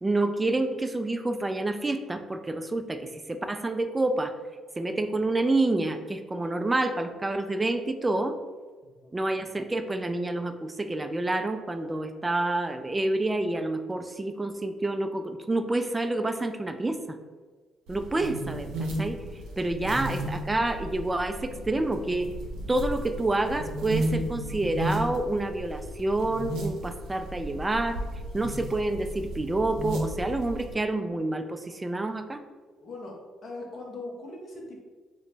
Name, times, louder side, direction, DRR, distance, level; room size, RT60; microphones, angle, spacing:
voice 1, 0.0-4.3 4.8-8.4 9.1-17.2 17.9-19.2 19.6-22.3 22.7-28.0 28.3-32.4, right 2 dB, 20° right, 8 dB, 0.4 m, -28 dB
sound 1, 17.9-30.7, right 1 dB, 75° right, 0.7 m, -34 dB
voice 2, 32.8-33.2 33.4-34.8, left 2 dB, 60° left, -1 dB, 0.9 m, -40 dB
3.0 x 2.1 x 4.1 m, 1.4 s
hypercardioid pair, 55°, 0 cm